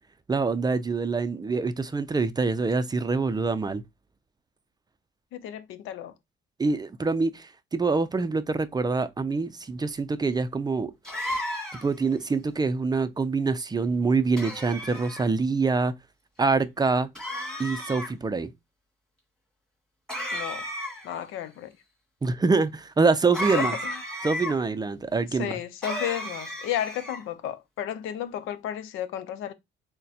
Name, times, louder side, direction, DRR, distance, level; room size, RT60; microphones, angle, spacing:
voice 1, 0.3-3.8 6.6-10.9 11.8-15.9 16.4-17.1 17.6-18.5 22.2-23.7 24.2-25.6, right 4 dB, 20° right, 0.4 m, -25 dB
voice 2, 5.3-6.1 20.3-20.6 21.0-21.7 23.5-23.9 25.3-29.5, left 10 dB, 90° left, 0.6 m, -33 dB
sound 1, 11.0-12.0 14.4-15.3 17.1-18.1 20.1-21.2 23.3-24.5 25.8-27.2, equal, 5° left, 1.8 m, -33 dB
6.2 x 2.2 x 2.7 m
cardioid pair, 90°, 20 cm